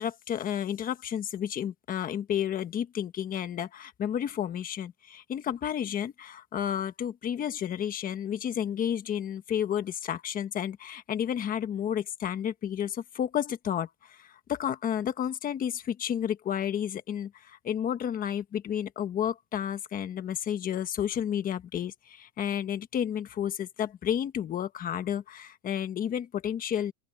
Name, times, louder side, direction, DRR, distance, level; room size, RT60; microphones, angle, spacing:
voice 1, 0.0-26.9, left 9 dB, 20° left, 1.3 m, -31 dB
open air
supercardioid pair, 165°, 38 cm